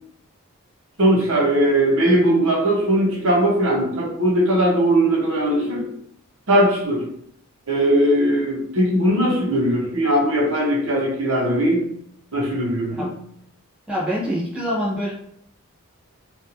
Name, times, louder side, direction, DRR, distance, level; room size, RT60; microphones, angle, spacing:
voice 1, 1.0-5.9 6.5-7.0 7.7-11.8 12.3-13.1, right 1 dB, 65° right, -2 dB, 0.8 m, -19 dB
voice 2, 13.9-15.1, equal, 5° right, -7 dB, 0.6 m, -25 dB
2.9 x 2.4 x 2.5 m, 0.68 s
head